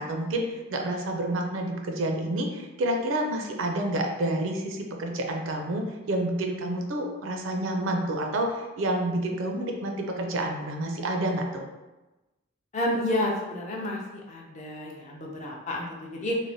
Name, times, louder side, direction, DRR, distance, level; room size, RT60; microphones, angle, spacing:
voice 1, 0.0-11.6, right 1 dB, 65° right, 2 dB, 0.4 m, -29 dB
voice 2, 12.7-16.4, left 1 dB, 35° left, -1 dB, 0.4 m, -30 dB
3.1 x 2.1 x 2.6 m, 1.1 s
head